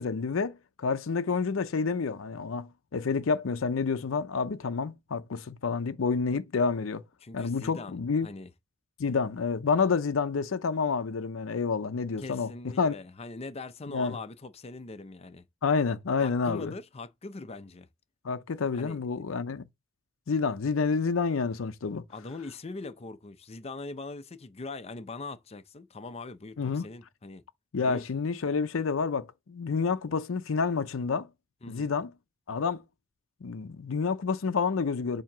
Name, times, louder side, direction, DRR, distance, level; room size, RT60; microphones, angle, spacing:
voice 1, 0.0-7.0 7.3-8.3 9.0-12.5 12.8-13.0 13.9-14.2 15.6-16.7 18.2-19.6 20.3-22.0 26.6-26.8 27.7-31.3 31.7-32.1 32.5-32.8 33.4-35.2, left 5 dB, 75° left, 0.5 m, -29 dB
voice 2, 7.2-8.5 12.2-15.4 16.2-17.9 18.7-19.3 22.1-27.4 27.8-28.1 31.6-31.9, left 3 dB, 30° left, 0.5 m, -42 dB
7.2 x 2.8 x 5.9 m
head